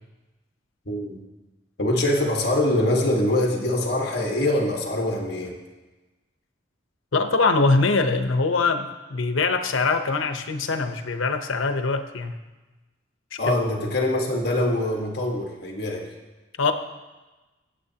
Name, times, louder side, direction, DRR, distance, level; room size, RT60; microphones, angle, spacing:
voice 1, 0.9-1.2 1.8-5.5 13.4-16.1, left 1 dB, 55° left, 0 dB, 1.5 m, -24 dB
voice 2, 7.1-12.4 13.3-13.4 16.6-16.7, left 3 dB, 85° left, 7 dB, 0.9 m, -23 dB
24.0 x 8.1 x 2.9 m, 1.2 s
head